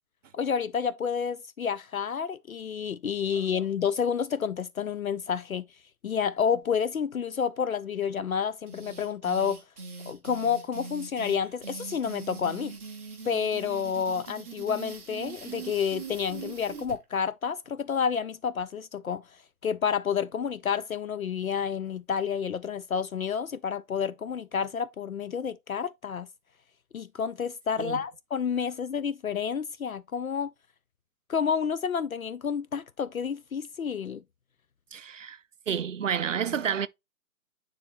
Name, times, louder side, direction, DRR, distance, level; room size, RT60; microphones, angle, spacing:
voice 1, 0.3-5.6 6.0-9.6 10.1-12.7 13.3-19.2 19.6-26.3 26.9-30.5 31.3-34.2, left 7 dB, 70° left, 0.6 m, -29 dB
sound 1, 8.7-17.0, right 5 dB, 10° right, 0.7 m, -42 dB
voice 2, 34.9-35.4 35.7-36.9, right 7 dB, 60° right, 0.6 m, -30 dB
9.7 x 3.7 x 3.1 m
figure-of-eight pair, 135°, 44 cm